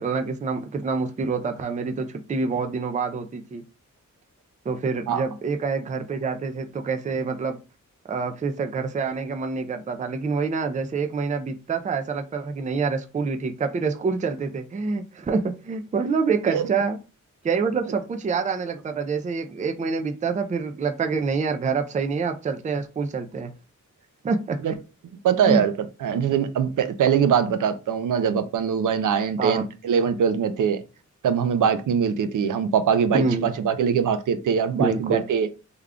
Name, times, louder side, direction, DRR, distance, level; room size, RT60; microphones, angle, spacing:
voice 1, 0.0-3.6 4.7-7.6 8.1-17.0 17.4-23.5 24.2-24.6 25.5-25.6 29.4-29.7 33.1-33.5 34.8-35.2, right 4 dB, 25° right, 0.3 m, -26 dB
voice 2, 25.2-25.7 26.0-30.8 31.2-35.5, right 7 dB, 85° right, 0.5 m, -22 dB
3.5 x 2.2 x 3.5 m
wide cardioid pair, 175°, 30 cm